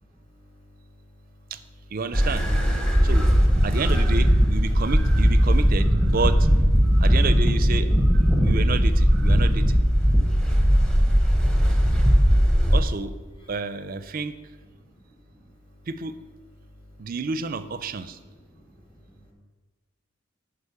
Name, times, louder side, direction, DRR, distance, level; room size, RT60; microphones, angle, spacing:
voice 1, 0.0-2.0 2.8-3.1 3.9-4.1 10.1-12.8 13.3-13.6 14.4-15.9 16.4-17.1 17.9-19.3, left 1 dB, 25° left, -1 dB, 2.0 m, -52 dB
voice 2, 1.9-2.5 3.0-3.3 3.6-6.5 7.0-7.9 8.2-9.8 12.7-13.1 13.5-14.3 15.9-16.1 17.0-18.2, right 4 dB, 40° right, 12 dB, 0.4 m, -30 dB
sound 1, 2.1-12.8, equal, 5° left, 0.9 m, -19 dB
8.3 x 5.0 x 7.0 m, 1.3 s
head